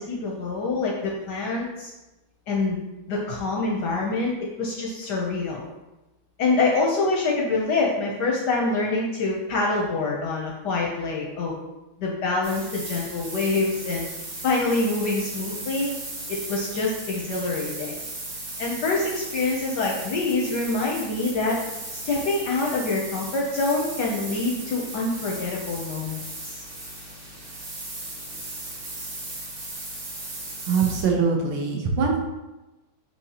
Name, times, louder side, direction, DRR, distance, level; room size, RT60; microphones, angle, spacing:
voice 1, 0.0-1.9 2.5-2.8 3.1-4.3 4.6-5.7 6.4-11.5 12.0-14.1 14.4-15.9 16.3-18.0 18.6-21.6 21.9-26.6, left 3 dB, 70° left, -2 dB, 1.0 m, -26 dB
sound 1, 12.4-31.0, right 2 dB, 60° right, 2.2 m, -36 dB
voice 2, 30.7-32.2, right 5 dB, 80° right, 0 dB, 1.7 m, -22 dB
6.3 x 2.9 x 2.8 m, 1.0 s
omnidirectional pair, 2.3 m